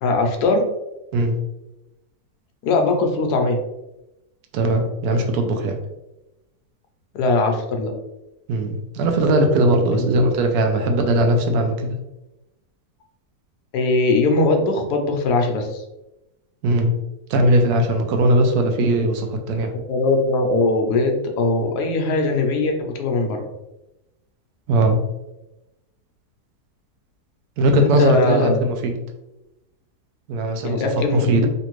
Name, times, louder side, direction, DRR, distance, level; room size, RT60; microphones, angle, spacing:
voice 1, 0.0-0.7 2.6-3.6 7.1-7.9 9.9-10.2 13.7-15.8 19.9-23.5 27.7-28.6 30.6-31.5, left 3 dB, 80° left, 4 dB, 1.1 m, -20 dB
voice 2, 4.5-5.8 8.5-12.0 16.6-16.9 17.3-19.7 24.7-25.0 27.6-29.0 30.3-30.8 31.1-31.5, right 1 dB, 75° right, 5 dB, 1.0 m, -19 dB
3.2 x 2.6 x 3.0 m, 0.96 s
omnidirectional pair, 1.7 m